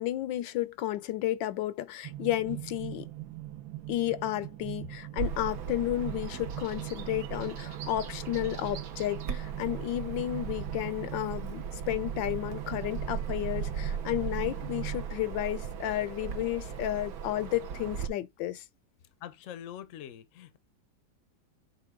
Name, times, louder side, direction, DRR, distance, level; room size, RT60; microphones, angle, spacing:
voice 1, 0.0-3.1 3.9-18.6, left 14 dB, 80° left, 1.3 m, -32 dB
sound 1, 2.0-15.1, right 16 dB, 90° right, 1.6 m, -42 dB
Bird vocalization bird call bird song, 5.2-18.1, right 7 dB, 60° right, 1.2 m, -38 dB
voice 2, 19.2-20.6, left 10 dB, 55° left, 0.9 m, -44 dB
7.0 x 3.7 x 3.6 m
omnidirectional pair, 2.0 m